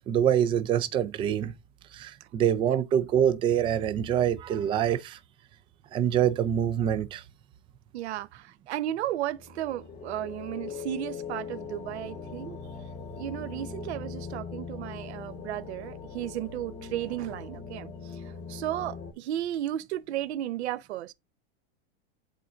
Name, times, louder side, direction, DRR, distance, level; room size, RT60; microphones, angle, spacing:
voice 1, 0.1-1.5 1.9-5.2 5.9-7.2, right 9 dB, 15° right, 0.4 m, -25 dB
voice 2, 7.9-12.6 13.2-21.1, right 13 dB, 80° right, 0.9 m, -34 dB
sound 1, 9.3-19.1, left 5 dB, 20° left, 0.9 m, -41 dB
11.0 x 3.9 x 2.4 m
supercardioid pair, 160°, 32 cm